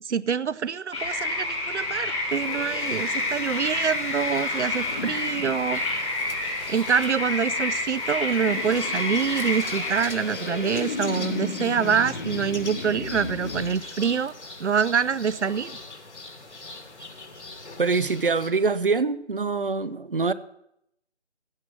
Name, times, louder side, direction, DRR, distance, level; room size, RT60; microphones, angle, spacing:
voice 1, 0.0-5.8 6.7-14.3 14.6-15.8, right 7 dB, 80° right, 0.6 m, -26 dB
sound 1, 0.9-10.0, left 2 dB, 30° left, 6.3 m, -29 dB
sound 2, 2.3-6.8 8.3-13.8, left 3 dB, 45° left, 1.9 m, -35 dB
sound 3, 5.7-18.5, left 2 dB, 85° left, 2.8 m, -41 dB
voice 2, 17.8-20.3, right 4 dB, 50° right, 0.8 m, -24 dB
16.5 x 10.0 x 6.3 m
figure-of-eight pair, 175°, 34 cm